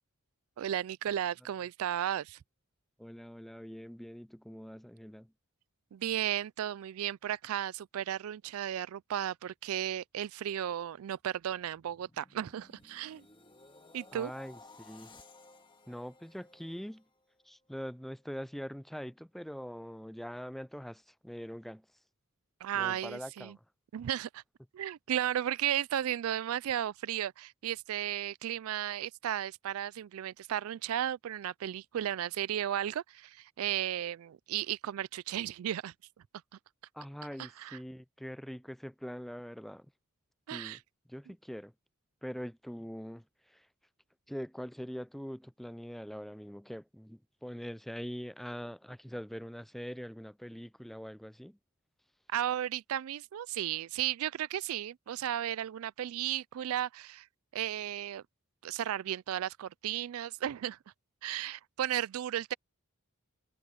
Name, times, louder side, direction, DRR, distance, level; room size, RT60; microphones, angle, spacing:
voice 1, 0.6-2.4 5.9-13.2 13.9-14.3 22.6-23.6 23.9-24.4 24.7-35.9 37.4-37.8 40.5-40.8 41.3-41.4 52.3-57.3 57.5-58.2 58.6-60.8 61.2-62.5, right 11 dB, 75° right, 0.3 m, -34 dB
voice 2, 3.0-5.3 14.1-15.1 15.9-17.0 17.5-21.8 22.7-23.5 36.9-39.9 40.5-40.8 41.1-41.7 42.2-43.2 43.5-43.6 44.3-51.6, equal, ahead, 0.4 m, -43 dB
sound 1, 11.2-17.5 17.9-18.2, left 3 dB, 20° left, 1.9 m, -58 dB
head